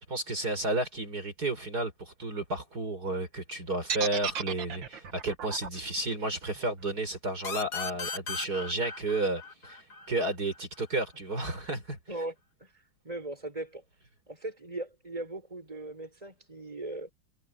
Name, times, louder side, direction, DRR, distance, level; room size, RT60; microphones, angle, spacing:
voice 1, 0.0-12.0, right 2 dB, 50° right, 5.5 m, -32 dB
sound 1, 3.9-7.9, right 7 dB, 70° right, 2.2 m, -35 dB
sound 2, 7.4-10.8, left 5 dB, 55° left, 2.5 m, -38 dB
voice 2, 13.0-13.8 14.3-17.1, right 2 dB, 15° right, 5.8 m, -38 dB
omnidirectional pair, 2.1 m